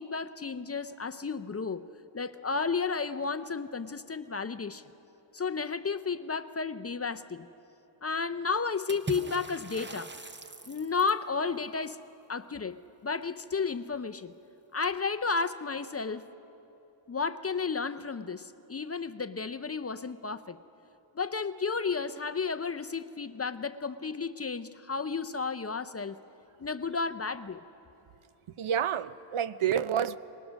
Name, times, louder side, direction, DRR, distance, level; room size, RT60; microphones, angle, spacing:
voice 1, 0.0-1.9 2.1-4.8 5.3-7.5 8.0-10.1 10.7-12.0 12.3-14.3 14.7-16.3 17.1-20.6 21.1-26.2 26.6-27.6, left 5 dB, 30° left, 10 dB, 0.4 m, -32 dB
Water / Splash splatter, 8.9-11.3, right 3 dB, 20° right, 0.7 m, -41 dB
voice 2, 28.6-30.2, right 9 dB, 75° right, 15 dB, 0.6 m, -29 dB
24.5 x 20.0 x 6.3 m, 3.0 s
wide cardioid pair, 110°, 50 cm